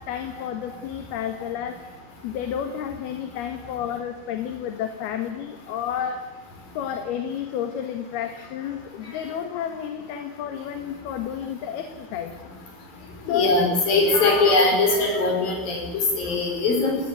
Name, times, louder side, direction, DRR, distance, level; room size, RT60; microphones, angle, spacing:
voice 1, 0.1-1.8 2.2-6.3 6.7-12.5 13.3-13.6, left 9 dB, 75° left, 7 dB, 3.4 m, -31 dB
voice 2, 13.3-17.0, left 3 dB, 60° left, 2 dB, 7.3 m, -21 dB
28.5 x 18.0 x 9.2 m, 1.1 s
omnidirectional pair, 4.7 m